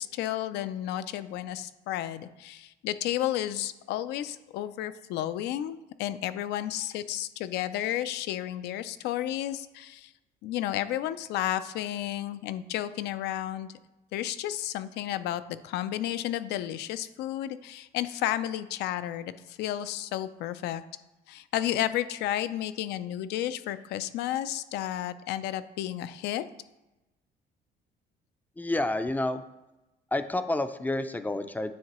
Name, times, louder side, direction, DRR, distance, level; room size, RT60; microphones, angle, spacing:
voice 1, 0.0-10.1 10.4-13.7 14.1-20.8 21.3-26.4, left 12 dB, 80° left, 13 dB, 0.4 m, -32 dB
voice 2, 28.6-29.4 30.1-31.7, left 2 dB, 10° left, 10 dB, 0.4 m, -29 dB
9.4 x 3.6 x 3.0 m, 1.0 s
cardioid pair, 110°, 17 cm